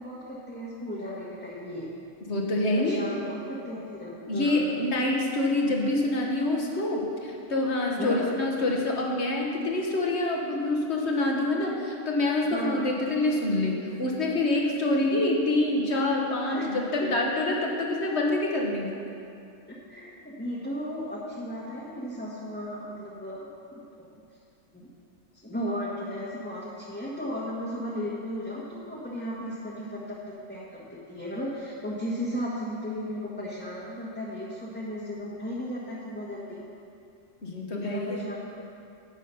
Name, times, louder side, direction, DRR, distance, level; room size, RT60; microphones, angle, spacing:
voice 1, 0.0-1.9 2.8-4.7 8.0-8.4 12.5-12.9 16.5-16.7 17.0-17.1 19.7-23.4 23.7-24.1 24.7-24.9 25.4-30.2 30.5-36.6 37.7-38.4, equal, 10° left, -8 dB, 1.3 m, -35 dB
voice 2, 2.3-3.0 4.3-19.0 37.4-38.2, left 2 dB, 55° left, 0 dB, 1.7 m, -26 dB
11.0 x 8.3 x 5.6 m, 2.5 s
omnidirectional pair, 1.4 m